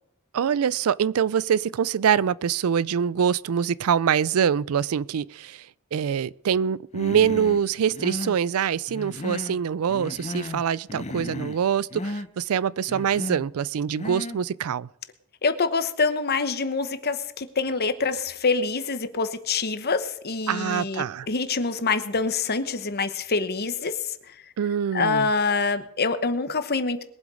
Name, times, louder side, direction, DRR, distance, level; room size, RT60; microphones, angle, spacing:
voice 1, 0.3-5.7 5.9-14.9 20.5-21.3 24.6-25.3, right 8 dB, 70° right, 0.4 m, -24 dB
Human voice, 6.9-7.6 7.9-8.4 8.9-9.6 9.9-10.6 10.9-11.6 11.9-12.3 12.9-13.5 13.9-14.4, left 2 dB, 30° left, 0.7 m, -34 dB
voice 2, 15.4-24.0 24.9-27.0, left 4 dB, 45° left, 1.1 m, -25 dB
21.5 x 7.9 x 5.0 m
head